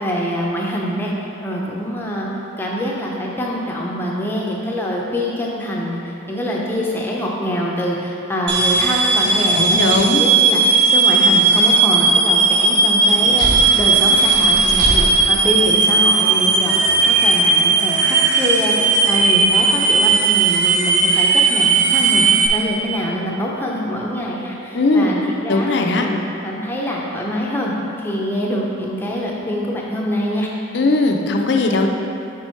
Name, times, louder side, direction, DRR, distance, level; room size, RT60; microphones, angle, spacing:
voice 1, 0.0-1.1 1.4-2.3 2.6-25.7 26.0-27.7 28.0-30.5, equal, 10° left, -3 dB, 0.6 m, -24 dB
sound 1, 8.5-22.5, right 4 dB, 60° right, 0.6 m, -16 dB
voice 2, 9.5-10.2 24.7-25.1 25.5-26.0 30.7-31.9, left 2 dB, 55° left, 2 dB, 0.5 m, -18 dB
sound 2, 13.1-19.7, equal, 90° right, 1.1 m, -28 dB
6.0 x 4.5 x 4.4 m, 2.8 s
head